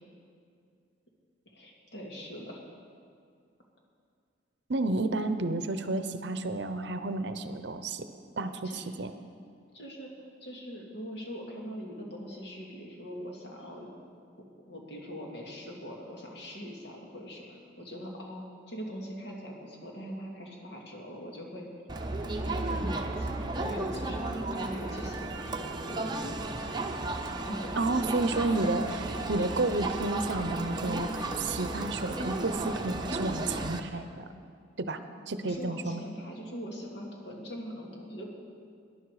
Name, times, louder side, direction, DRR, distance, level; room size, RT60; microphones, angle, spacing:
voice 1, 1.5-2.6 8.6-8.8 9.7-10.1 10.4-13.9 14.4-21.7 22.3-26.7 27.4-29.5 35.4-38.3, equal, 60° left, -1 dB, 2.3 m, -42 dB
voice 2, 4.7-8.1 8.4-9.1 27.8-34.3 34.8-35.0 35.3-36.0, right 2 dB, 60° right, 10 dB, 0.7 m, -31 dB
Crowd, 21.9-33.8, right 2 dB, 20° right, 0.8 m, -34 dB
18.5 x 11.0 x 4.9 m, 2.3 s
head